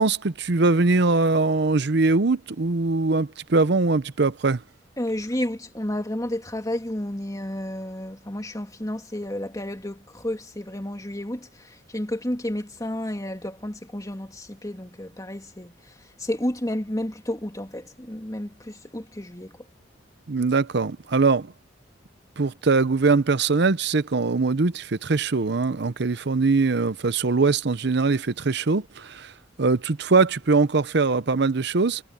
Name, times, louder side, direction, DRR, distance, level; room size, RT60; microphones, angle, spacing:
voice 1, 0.0-4.6 20.3-21.5 22.4-29.3 29.6-32.0, right 3 dB, 60° right, 0.7 m, -22 dB
voice 2, 5.0-19.6, left 1 dB, 20° left, 2.8 m, -31 dB
head